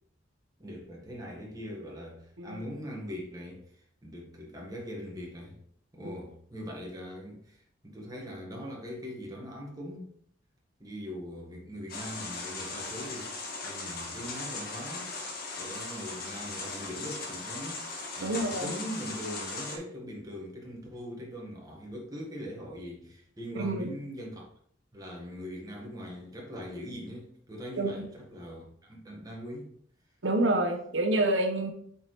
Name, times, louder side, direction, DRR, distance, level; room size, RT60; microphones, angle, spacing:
voice 1, 0.6-5.6 5.9-10.1 10.8-13.3 13.6-15.1 15.6-17.8 18.2-24.5 24.9-29.7, equal, 20° right, 1.8 m, -41 dB
sound 1, 11.9-19.8, left 3 dB, 55° left, 1.5 m, -38 dB
voice 2, 18.2-18.7 23.6-23.9 27.8-28.1 30.2-31.7, right 2 dB, 85° right, 0.9 m, -28 dB
7.6 x 4.6 x 3.4 m
head